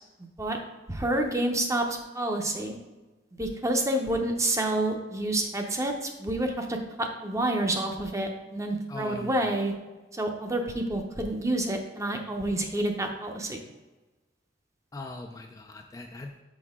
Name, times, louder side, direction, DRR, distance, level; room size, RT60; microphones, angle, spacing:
voice 1, 0.9-1.8 2.1-2.8 3.4-9.7 10.1-13.6, right 1 dB, 15° right, 3 dB, 0.7 m, -28 dB
voice 2, 8.9-9.5 14.9-16.4, left 2 dB, 20° left, 3 dB, 0.4 m, -40 dB
6.3 x 5.6 x 3.6 m, 1.2 s
head